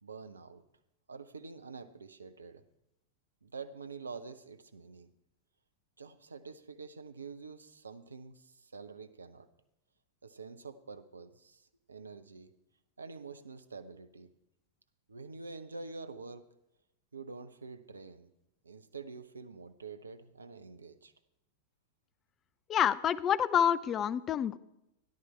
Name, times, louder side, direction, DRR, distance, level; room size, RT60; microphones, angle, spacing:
voice 1, 0.0-0.6 1.1-2.6 3.4-5.1 6.0-9.5 10.2-12.5 13.0-14.3 15.1-16.4 17.1-18.3 18.6-21.1, right 4 dB, 75° right, 11 dB, 0.7 m, -47 dB
voice 2, 22.7-24.6, left 9 dB, 30° left, 18 dB, 0.4 m, -28 dB
13.5 x 11.0 x 4.3 m, 0.86 s
figure-of-eight pair, 90°, 0 cm